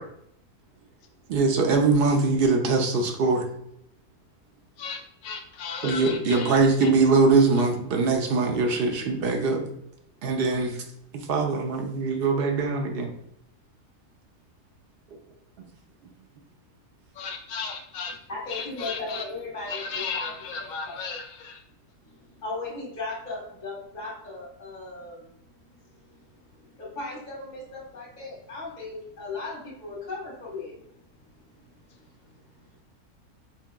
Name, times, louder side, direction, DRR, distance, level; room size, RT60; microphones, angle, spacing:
voice 1, 1.3-3.4 5.8-9.6 10.2-10.8 11.1-13.1, right 4 dB, 75° right, 2 dB, 0.5 m, -22 dB
voice 2, 4.8-6.9 17.2-18.1 18.5-19.2 19.7-21.6, left 5 dB, 70° left, 3 dB, 0.9 m, -35 dB
voice 3, 18.3-20.3 20.6-20.9 22.1-25.3 26.8-30.8, left 3 dB, 30° left, -6 dB, 1.2 m, -37 dB
4.5 x 2.8 x 2.2 m, 0.77 s
omnidirectional pair, 1.6 m